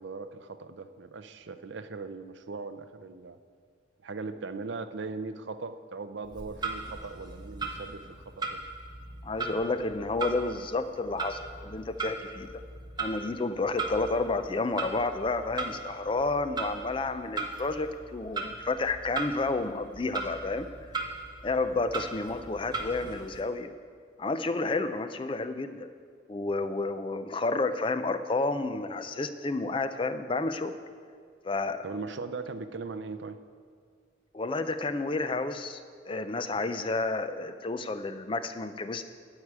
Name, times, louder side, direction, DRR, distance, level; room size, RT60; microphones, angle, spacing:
voice 1, 0.0-3.4 4.0-8.6 21.9-22.0 31.8-33.4, right 4 dB, 60° right, 11 dB, 0.5 m, -39 dB
Clock, 6.2-23.4, right 4 dB, 20° right, 0.8 m, -38 dB
voice 2, 9.2-12.6 13.0-21.1 21.4-23.7 24.2-25.9 26.3-30.8 31.4-31.8 34.3-35.8 36.1-39.1, left 3 dB, 25° left, 10 dB, 0.4 m, -31 dB
12.5 x 4.8 x 8.6 m, 2.1 s
head